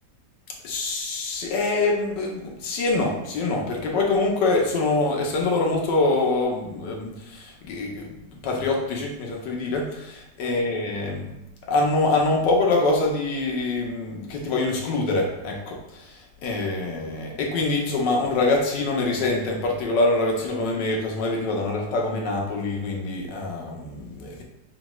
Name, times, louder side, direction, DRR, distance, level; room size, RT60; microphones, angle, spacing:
voice 1, 0.6-11.4 11.7-24.4, left 2 dB, 85° left, 0 dB, 1.5 m, -25 dB
5.9 x 2.2 x 3.0 m, 0.88 s
omnidirectional pair, 1.8 m